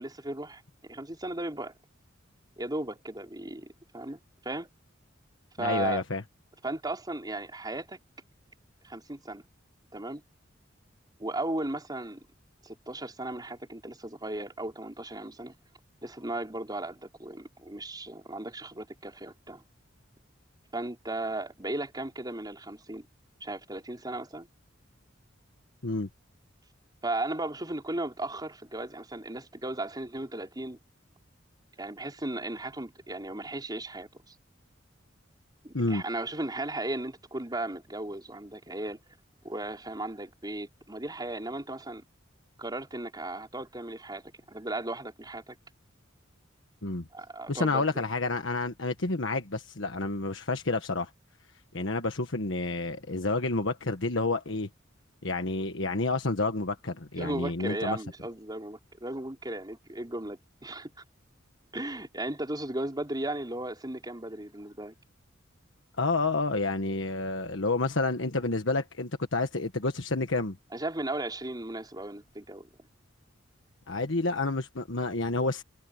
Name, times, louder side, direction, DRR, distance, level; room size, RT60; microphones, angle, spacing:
voice 1, 0.0-1.7 2.6-3.7 3.9-4.2 4.4-4.7 5.6-6.0 6.6-8.0 8.8-9.4 9.9-10.2 11.2-12.2 12.6-15.5 16.0-19.6 20.7-23.1 23.4-24.5 27.0-30.8 31.8-34.3 35.6-39.0 39.4-42.0 42.6-44.2 44.5-45.6 47.1-47.9 57.2-60.9 61.7-64.9 70.7-72.7, right 2 dB, 20° right, 4.7 m, -36 dB
voice 2, 5.6-6.2 25.8-26.1 35.7-36.0 46.8-47.1 47.5-51.1 51.7-54.7 55.2-58.0 66.0-70.6 73.9-75.6, left 3 dB, 70° left, 1.5 m, -29 dB
head